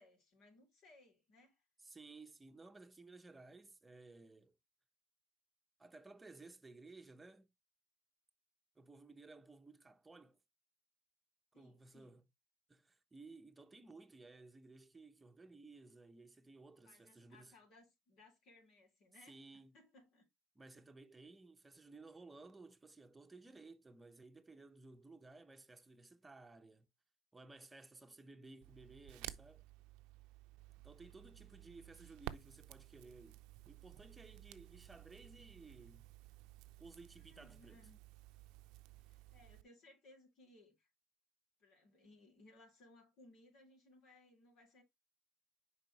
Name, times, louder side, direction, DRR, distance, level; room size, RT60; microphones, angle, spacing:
voice 1, 0.0-1.6 11.5-12.2 16.9-20.2 37.2-38.0 38.9-40.9 41.6-44.8, left 2 dB, 60° left, 3.8 m, -64 dB
voice 2, 1.8-4.5 5.8-7.5 8.8-10.4 11.5-12.2 12.7-17.5 19.3-19.7 20.5-26.9 27.3-29.6 30.8-33.4 33.7-36.0 36.8-37.9, right 3 dB, 15° right, 0.9 m, -57 dB
Crackle, 28.6-39.6, right 16 dB, 75° right, 0.5 m, -54 dB
6.6 x 4.9 x 3.1 m
supercardioid pair, 95°, 0 cm